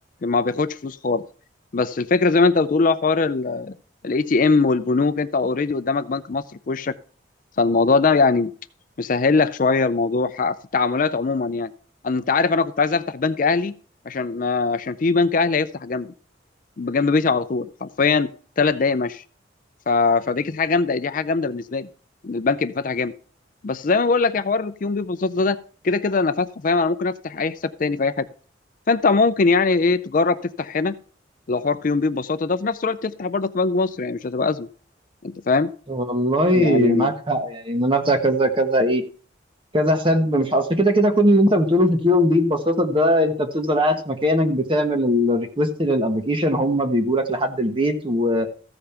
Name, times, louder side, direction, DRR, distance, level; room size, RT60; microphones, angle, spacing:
voice 1, 0.2-1.2 1.7-3.7 4.0-6.9 7.6-8.5 9.0-11.7 12.0-13.7 14.1-16.1 16.8-18.3 18.6-19.2 19.9-21.9 22.2-23.1 23.6-25.6 25.8-28.3 28.9-30.9 31.5-34.7 35.2-35.7 36.5-37.1, left 4 dB, 45° left, 12 dB, 0.5 m, -21 dB
voice 2, 35.9-39.0 39.7-48.5, equal, 25° right, 5 dB, 1.3 m, -20 dB
14.5 x 5.2 x 5.8 m, 0.42 s
head